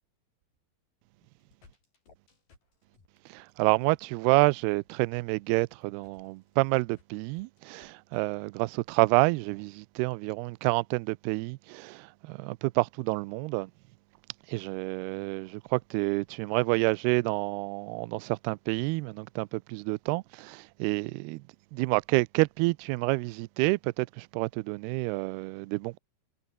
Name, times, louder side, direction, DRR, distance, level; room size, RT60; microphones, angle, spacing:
sound 1, 1.2-8.2, left 4 dB, 50° left, 8.4 m, -62 dB
voice 1, 3.3-13.7 14.5-21.4 21.7-26.0, right 25 dB, 85° right, 2.3 m, -28 dB
omnidirectional pair, 5.2 m